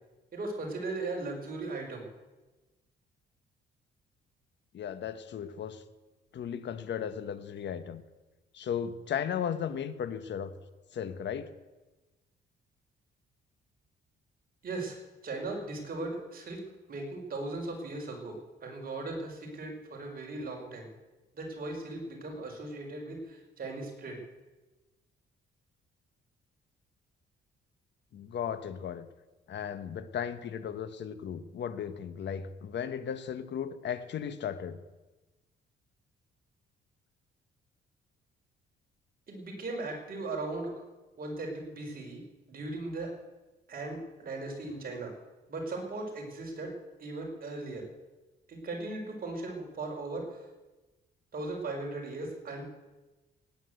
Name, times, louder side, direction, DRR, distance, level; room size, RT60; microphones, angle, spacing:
voice 1, 0.3-2.0 14.6-16.6 16.9-20.9 21.3-24.2 39.3-40.8 41.2-42.2 42.5-43.1 43.7-45.1 45.5-47.9 48.5-50.4 51.3-52.7, right 2 dB, 50° right, 1 dB, 5.2 m, -38 dB
voice 2, 4.7-5.8 6.3-8.0 8.5-10.5 10.9-11.5 28.1-29.1 29.5-34.8, left 8 dB, 65° left, 12 dB, 1.3 m, -36 dB
17.5 x 9.9 x 8.0 m, 1.1 s
cardioid pair, 90°, 20 cm